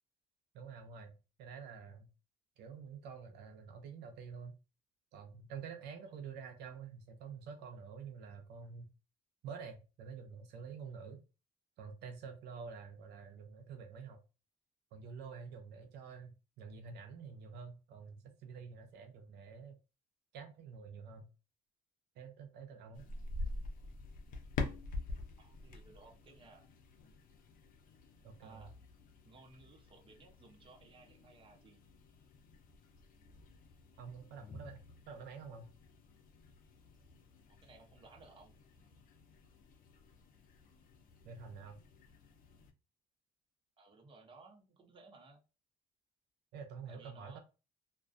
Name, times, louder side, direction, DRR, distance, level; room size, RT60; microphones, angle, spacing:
voice 1, 0.5-1.1 1.4-2.1 2.6-4.6 5.1-8.9 9.4-11.2 11.8-14.2 14.9-19.8 20.3-21.3 22.2-23.1 28.2-28.7 34.0-35.7 41.2-41.8 46.5-47.4, right 6 dB, 80° right, 0.5 m, -48 dB
sound 1, 22.9-42.7, left 3 dB, 55° left, 0.5 m, -47 dB
voice 2, 25.4-26.7 28.4-28.8 29.2-31.8 37.5-38.5 43.8-45.4 46.9-47.4, right 3 dB, 30° right, 0.7 m, -59 dB
2.3 x 2.1 x 2.4 m
cardioid pair, 110°, 17 cm